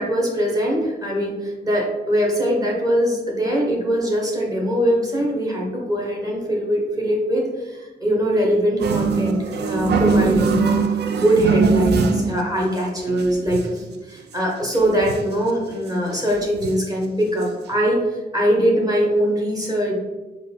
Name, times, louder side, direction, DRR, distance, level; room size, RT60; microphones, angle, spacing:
voice 1, 0.0-10.8 11.1-18.0 18.3-20.0, equal, 20° right, -2 dB, 0.8 m, -22 dB
sound 1, 8.8-12.4 12.8-12.9 13.1-13.8 14.3-14.4 14.6-15.4 15.9-16.0 16.3-16.9 17.4-17.5 17.7-17.8, right 5 dB, 75° right, 0.4 m, -22 dB
4.5 x 2.3 x 3.3 m, 1.2 s
wide cardioid pair, 140°, 17 cm